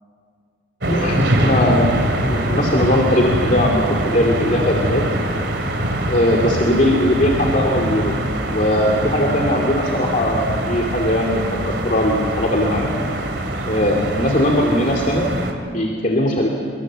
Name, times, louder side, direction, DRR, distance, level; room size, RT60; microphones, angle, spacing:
voice 1, 0.8-2.0 2.3-5.0 6.1-8.1 8.5-12.9 13.6-15.3 15.6-16.6, left 1 dB, 45° left, 0 dB, 2.6 m, -19 dB
sound 1, 0.8-15.5, right 1 dB, 75° right, 3.0 m, -23 dB
26.5 x 24.5 x 7.5 m, 2.3 s
head